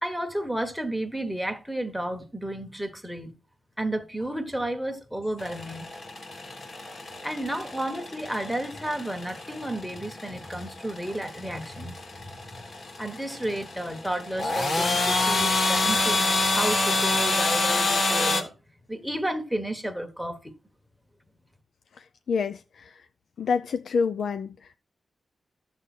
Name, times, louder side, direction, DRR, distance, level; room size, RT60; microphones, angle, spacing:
voice 1, 0.0-3.3 3.8-5.9 7.2-12.0 12.2-12.3 13.0-18.5 18.9-20.5, right 1 dB, ahead, 1.4 m, -32 dB
sound 1, 5.4-18.4, left 2 dB, 50° left, 1.4 m, -27 dB
voice 2, 22.3-22.9 23.4-24.5, left 5 dB, 80° left, 0.4 m, -27 dB
12.5 x 7.2 x 4.3 m
wide cardioid pair, 150°, 0 cm